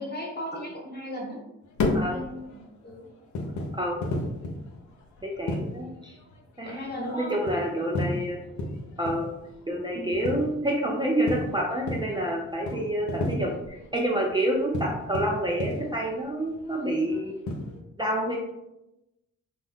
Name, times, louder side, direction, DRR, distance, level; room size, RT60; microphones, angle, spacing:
voice 1, 0.0-1.4 2.0-3.1 6.6-7.4 9.9-10.2, left 1 dB, 35° left, -2 dB, 1.1 m, -36 dB
sound 1, 1.6-17.8, left 2 dB, 70° left, 0.6 m, -34 dB
voice 2, 3.7-4.0 5.2-6.2 6.6-6.8 7.1-8.4 9.0-9.3 9.7-17.4 18.0-18.4, right 1 dB, 15° right, -2 dB, 0.5 m, -28 dB
2.6 x 2.1 x 3.5 m, 0.94 s
cardioid pair, 65°, 30 cm